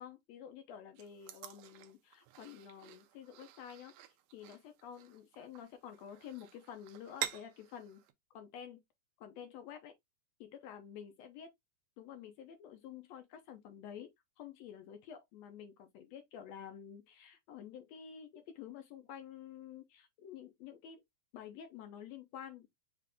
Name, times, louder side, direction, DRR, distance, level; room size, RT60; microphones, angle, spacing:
voice 1, 0.0-3.9 4.3-8.0 8.3-8.8 9.2-9.9 10.4-11.5 12.0-14.1 14.4-21.0 21.3-22.7, left 9 dB, 75° left, 1.8 m, -50 dB
sound 1, 1.0-8.1, right 12 dB, 75° right, 1.9 m, -47 dB
5.9 x 2.5 x 3.4 m
omnidirectional pair, 3.4 m